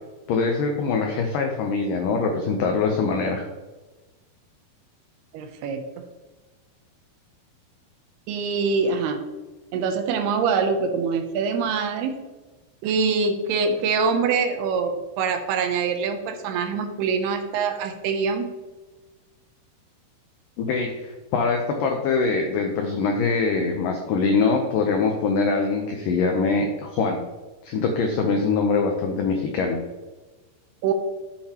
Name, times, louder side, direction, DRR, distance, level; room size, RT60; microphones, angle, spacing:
voice 1, 0.3-3.5 20.6-27.2 27.6-29.8, left 4 dB, 90° left, 3 dB, 1.9 m, -23 dB
voice 2, 5.3-5.8 8.3-9.2 9.7-12.1 12.8-18.5 30.8-30.9, right 5 dB, 80° right, 6 dB, 2.6 m, -24 dB
11.5 x 6.7 x 2.9 m, 1.2 s
omnidirectional pair, 4.9 m